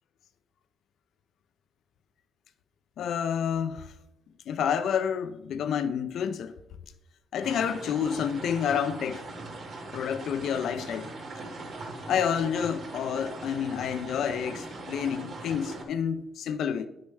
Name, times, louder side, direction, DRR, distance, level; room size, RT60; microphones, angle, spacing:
voice 1, 3.0-3.9 4.5-6.5 7.3-9.2 9.9-11.1 12.1-16.9, left 8 dB, 70° left, 0.4 m, -29 dB
sound 1, 7.4-15.8, right 2 dB, 65° right, 2.1 m, -40 dB
9.4 x 6.4 x 3.4 m
cardioid pair, 90°, 0 cm